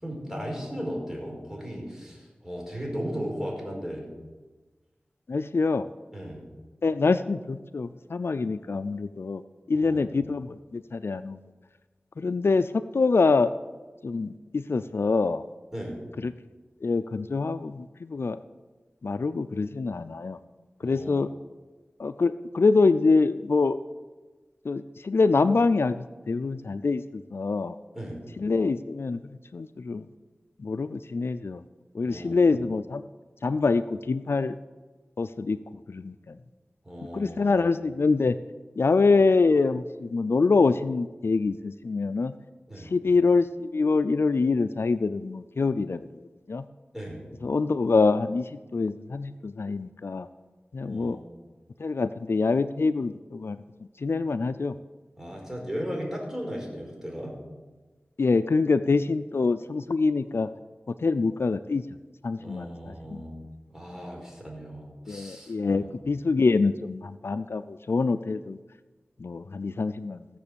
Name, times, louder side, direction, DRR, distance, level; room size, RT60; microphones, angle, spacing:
voice 1, 0.0-4.1 6.1-6.4 9.7-10.1 15.7-16.0 20.8-21.2 27.9-28.2 32.0-32.4 36.8-37.6 42.7-42.9 46.9-47.2 50.8-51.2 55.2-57.3 62.4-63.3 63.7-65.9, equal, 10° right, -1 dB, 5.0 m, -36 dB
voice 2, 5.3-5.9 6.8-9.4 9.7-11.4 12.2-13.5 14.0-15.4 16.2-16.3 16.8-18.4 19.0-20.4 20.8-21.3 22.0-23.8 24.6-27.8 28.4-29.2 29.5-30.1 30.6-31.6 31.9-33.0 33.4-34.5 35.2-35.6 35.9-36.4 37.1-38.4 38.8-42.3 42.8-46.1 46.5-46.7 47.4-50.3 50.7-51.2 51.8-53.6 54.0-54.7 58.2-60.5 61.0-61.8 62.2-63.2 65.1-68.6 69.2-70.3, left 4 dB, 75° left, 13 dB, 0.4 m, -25 dB
16.0 x 7.0 x 7.0 m, 1.3 s
cardioid pair, 40°, 4 cm